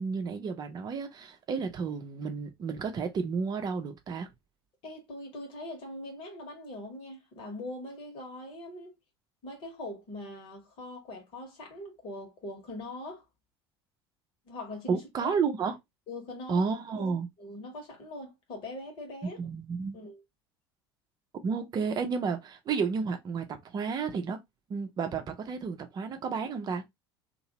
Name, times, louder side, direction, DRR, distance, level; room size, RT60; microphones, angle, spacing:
voice 1, 0.0-4.3 14.9-15.8 16.5-17.3 19.2-20.0 21.4-24.4 24.7-26.8, right 5 dB, 30° right, 0.7 m, -31 dB
voice 2, 4.8-9.0 9.4-13.2 14.5-15.3 16.1-16.6 16.9-17.1 17.4-19.4 19.9-20.2, left 1 dB, 45° left, 1.4 m, -42 dB
2.8 x 2.6 x 3.0 m
figure-of-eight pair, 70°, 13 cm